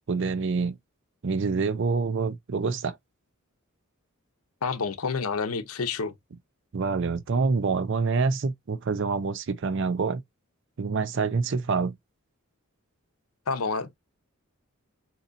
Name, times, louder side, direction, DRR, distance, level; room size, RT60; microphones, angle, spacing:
voice 1, 0.1-0.8 1.2-3.0 6.7-10.2 10.8-12.0, right 4 dB, 60° right, 0.5 m, -26 dB
voice 2, 4.6-6.1 13.5-13.9, left 4 dB, 85° left, 0.7 m, -29 dB
3.9 x 2.8 x 2.5 m
head